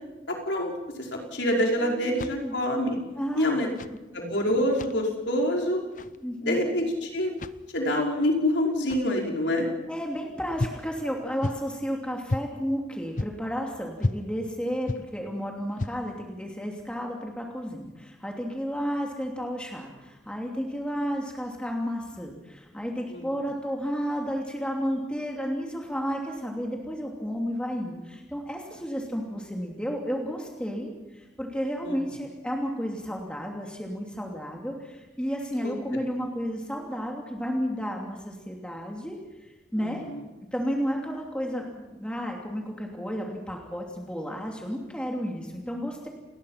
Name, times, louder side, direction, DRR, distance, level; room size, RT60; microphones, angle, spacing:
voice 1, 0.3-0.7 1.0-3.0 3.4-3.7 4.1-5.8 6.4-7.3 7.7-9.7 23.1-23.2 31.8-32.0 35.6-35.7 39.8-40.2, left 1 dB, 85° left, 0 dB, 5.4 m, -26 dB
voice 2, 1.8-2.5 3.2-4.0 6.2-6.6 9.8-40.0 40.5-46.1, equal, 5° left, 0 dB, 2.8 m, -32 dB
sound 1, 2.1-2.7 3.6-4.0 4.6-5.0 5.8-6.2 7.3-7.7 8.8-9.2 10.6-10.9 11.4-11.8 12.3-12.5 13.2-13.5 14.0-14.3 14.9-15.1 15.7-16.1, left 2 dB, 45° left, 0.7 m, -32 dB
28.5 x 20.5 x 5.9 m, 1.1 s
head